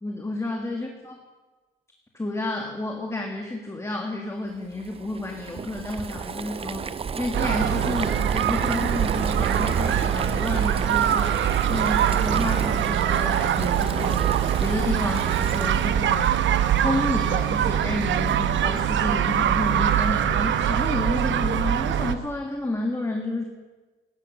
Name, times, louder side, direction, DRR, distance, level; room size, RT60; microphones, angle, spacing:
voice 1, 0.0-1.2 2.1-14.3 14.6-16.3 16.7-23.4, left 2 dB, 15° left, 2 dB, 1.9 m, -30 dB
Boiling, 4.8-16.0, right 6 dB, 30° right, 0.5 m, -31 dB
sound 1, 7.3-22.2, right 10 dB, 70° right, 1.0 m, -23 dB
16.0 x 13.0 x 6.3 m, 1.3 s
cardioid pair, 90°, 20 cm